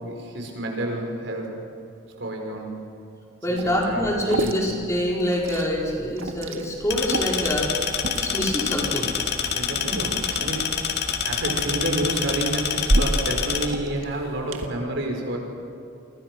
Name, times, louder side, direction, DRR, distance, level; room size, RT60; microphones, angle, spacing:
voice 1, 0.0-1.5 2.2-2.8 3.5-4.6 9.5-10.8 11.2-15.4, right 1 dB, 60° right, 2 dB, 5.0 m, -29 dB
voice 2, 3.4-7.7 8.1-9.1, left 1 dB, 15° left, -2 dB, 4.5 m, -25 dB
Liquid, 3.6-14.7, right 1 dB, 85° right, 1.7 m, -32 dB
sound 1, 6.9-13.7, left 7 dB, 55° left, 2.2 m, -27 dB
30.0 x 24.5 x 6.2 m, 2.6 s
head